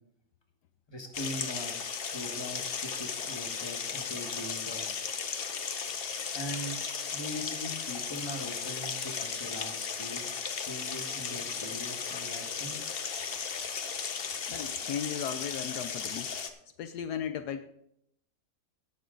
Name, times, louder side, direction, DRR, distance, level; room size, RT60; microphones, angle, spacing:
voice 1, 0.9-1.7 2.1-5.1 6.3-6.8 7.1-12.9, equal, 15° left, 3 dB, 1.3 m, -41 dB
sound 1, 1.1-16.5, left 6 dB, 50° left, 0.7 m, -36 dB
voice 2, 14.5-16.3 16.8-17.7, left 8 dB, 75° left, 9 dB, 1.1 m, -36 dB
16.5 x 6.2 x 3.8 m, 0.74 s
omnidirectional pair, 1.8 m